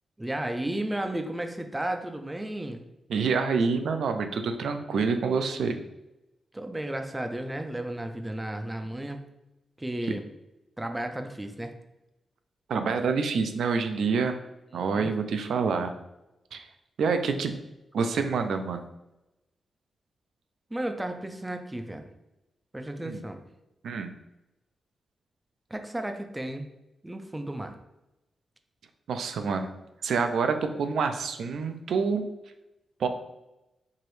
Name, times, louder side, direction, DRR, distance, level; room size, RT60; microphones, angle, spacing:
voice 1, 0.2-2.8 6.5-9.2 9.8-10.2 10.8-11.7 14.7-15.1 20.7-22.1 22.7-23.4 25.7-26.7 27.0-27.8, right 1 dB, 10° right, 6 dB, 0.4 m, -33 dB
voice 2, 3.1-5.8 12.7-14.4 14.7-15.9 16.5-16.7 17.0-17.5 17.9-18.9 23.0-23.2 23.8-24.1 29.1-29.7 30.0-32.2 33.0-33.1, right 5 dB, 80° right, 7 dB, 0.4 m, -27 dB
4.6 x 3.0 x 3.1 m, 0.95 s
wide cardioid pair, 150°, 0 cm